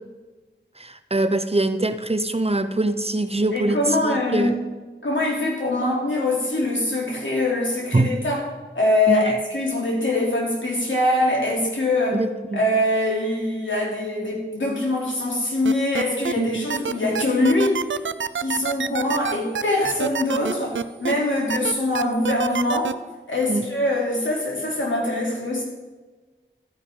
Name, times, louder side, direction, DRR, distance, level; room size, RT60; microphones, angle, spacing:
voice 1, 0.8-4.6 7.9-8.2 9.1-9.2 12.1-12.6 16.4-16.7 23.5-23.6, right 2 dB, 30° right, 10 dB, 0.6 m, -23 dB
voice 2, 3.5-4.6 5.0-8.4 8.7-12.2 12.5-17.8 18.4-22.9 23.3-25.6, left 1 dB, 80° left, -3 dB, 3.1 m, -23 dB
sound 1, 15.6-16.3 16.7-21.1 21.5-22.9, right 7 dB, 80° right, 0.4 m, -26 dB
12.0 x 9.8 x 3.7 m, 1.3 s
wide cardioid pair, 45°, 20 cm